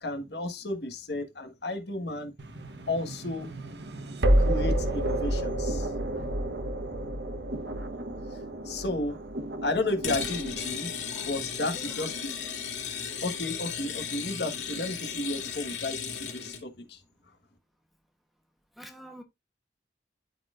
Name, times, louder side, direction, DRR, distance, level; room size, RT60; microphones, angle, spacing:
voice 1, 0.0-2.3 2.9-3.5 4.4-6.3 8.2-9.2 9.5-10.9 11.3-12.1 13.2-17.0, left 2 dB, 65° left, 1.5 m, -33 dB
sound 1, 2.4-13.4, right 1 dB, 70° right, 1.1 m, -31 dB
sound 2, 10.0-16.6, left 7 dB, 85° left, 2.2 m, -35 dB
voice 2, 11.6-12.1 18.7-19.2, equal, ahead, 1.0 m, -47 dB
13.0 x 4.3 x 2.5 m
head